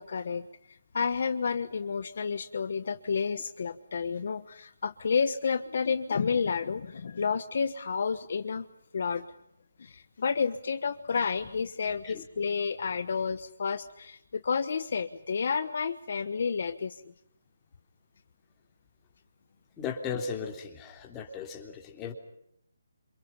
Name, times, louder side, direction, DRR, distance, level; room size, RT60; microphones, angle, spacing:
voice 1, 0.0-8.7 8.9-9.2 9.8-17.0, left 5 dB, 50° left, 11 dB, 1.2 m, -30 dB
voice 2, 19.8-22.1, left 6 dB, 15° left, 3 dB, 3.3 m, -36 dB
29.0 x 27.5 x 5.6 m, 0.74 s
hypercardioid pair, 170°, 0 cm